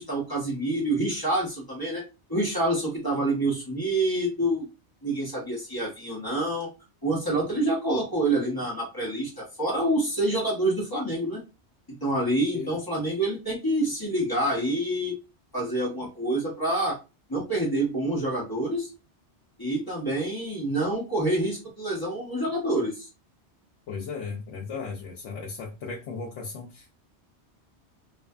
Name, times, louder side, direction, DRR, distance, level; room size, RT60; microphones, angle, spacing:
voice 1, 0.0-2.0 2.3-4.7 5.0-6.7 7.0-11.4 11.9-15.1 15.5-17.0 17.3-18.9 19.6-23.1, right 1 dB, 20° left, -4 dB, 1.0 m, -27 dB
voice 2, 23.9-26.9, left 4 dB, 85° left, -2 dB, 0.9 m, -36 dB
2.6 x 2.3 x 2.2 m, 0.28 s
omnidirectional pair, 1.2 m